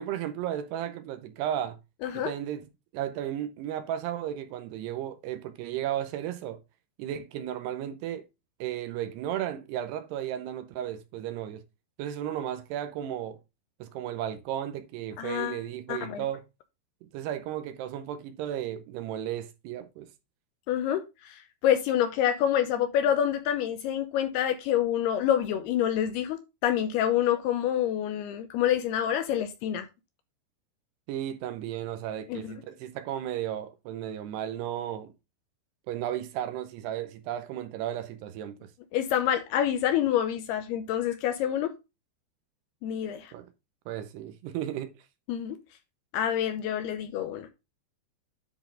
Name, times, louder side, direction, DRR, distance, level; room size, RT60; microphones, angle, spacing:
voice 1, 0.0-1.8 2.1-2.6 2.9-6.6 7.0-8.2 8.6-11.6 12.0-13.4 13.8-16.4 17.1-20.1 31.1-35.1 35.9-38.7 43.3-43.5 43.9-44.9, right 11 dB, 80° right, 2.6 m, -34 dB
voice 2, 2.0-2.3 15.2-15.6 15.9-16.3 20.7-29.9 32.3-32.5 38.9-41.7 42.8-43.3 45.3-45.6 46.1-47.5, left 10 dB, 80° left, 2.5 m, -27 dB
10.0 x 4.1 x 3.8 m
omnidirectional pair, 5.1 m